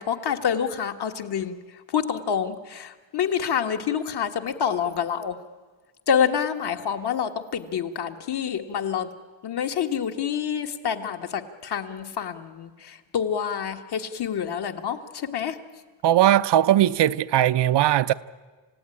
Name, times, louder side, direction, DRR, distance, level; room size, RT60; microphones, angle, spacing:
voice 1, 0.0-5.4 6.1-9.1 9.4-15.6, left 8 dB, 55° left, 1.7 m, -27 dB
voice 2, 16.0-18.1, right 12 dB, 60° right, 0.7 m, -19 dB
29.0 x 16.5 x 10.0 m
wide cardioid pair, 175°, 46 cm